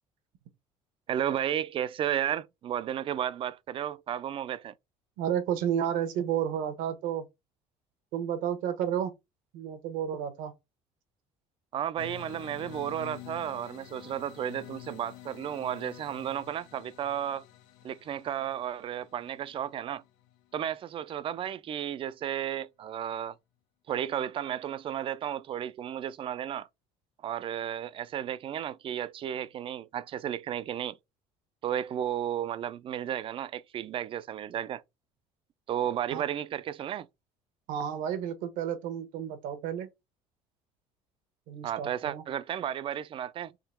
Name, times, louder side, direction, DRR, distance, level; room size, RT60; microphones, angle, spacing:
voice 1, 1.1-4.7 11.7-17.4 17.8-20.0 20.5-23.3 23.9-26.7 27.2-31.0 31.6-34.8 35.7-37.1 41.6-43.5, right 10 dB, 40° right, 0.4 m, -33 dB
voice 2, 5.2-7.3 8.1-9.1 9.5-10.5 36.1-36.2 37.7-39.9 41.5-42.2, right 9 dB, 80° right, 1.0 m, -31 dB
sound 1, 12.0-20.8, left 13 dB, 90° left, 0.6 m, -49 dB
3.7 x 2.9 x 4.2 m
cardioid pair, 110°, 14 cm